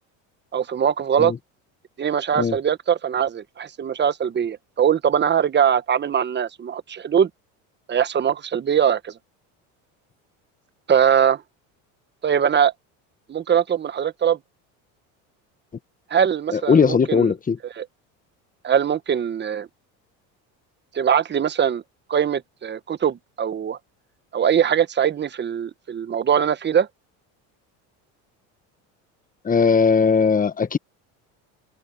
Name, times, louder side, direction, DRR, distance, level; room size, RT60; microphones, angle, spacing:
voice 1, 0.5-1.3 2.0-7.3 7.9-9.1 10.9-11.4 12.2-12.7 13.3-14.4 16.1-17.3 17.8-17.9 18.6-19.7 20.9-21.8 22.1-23.8 24.3-26.9, right 8 dB, 30° right, 1.2 m, -21 dB
voice 2, 16.5-17.6 29.4-30.8, left 5 dB, 20° left, 1.3 m, -18 dB
open air
supercardioid pair, 110°, 37 cm